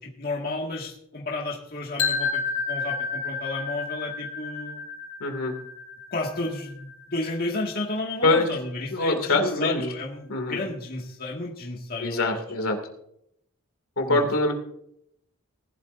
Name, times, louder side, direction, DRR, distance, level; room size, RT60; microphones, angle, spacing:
voice 1, 0.0-4.8 6.1-12.4 14.1-14.2, left 2 dB, 40° left, -2 dB, 2.0 m, -32 dB
sound 1, 2.0-7.9, left 5 dB, 90° left, 4.3 m, -31 dB
voice 2, 5.2-5.5 8.2-8.5 8.9-9.8 10.3-10.6 12.0-12.8 14.0-14.5, left 2 dB, 70° left, 4 dB, 2.5 m, -23 dB
19.5 x 12.0 x 2.7 m, 0.72 s
head